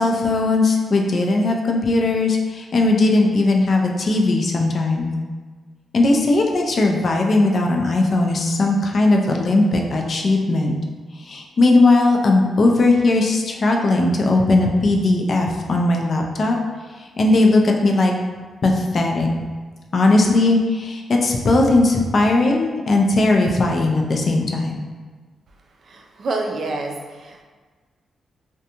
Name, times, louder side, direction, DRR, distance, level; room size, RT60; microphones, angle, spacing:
voice 1, 0.0-5.1 5.9-10.7 11.3-16.6 17.0-18.1 18.6-19.3 19.9-24.9, left 2 dB, 55° left, 1 dB, 0.4 m, -18 dB
voice 2, 25.9-27.4, right 2 dB, 60° right, 1 dB, 0.4 m, -28 dB
2.5 x 2.2 x 2.8 m, 1.4 s
cardioid pair, 65°, 0 cm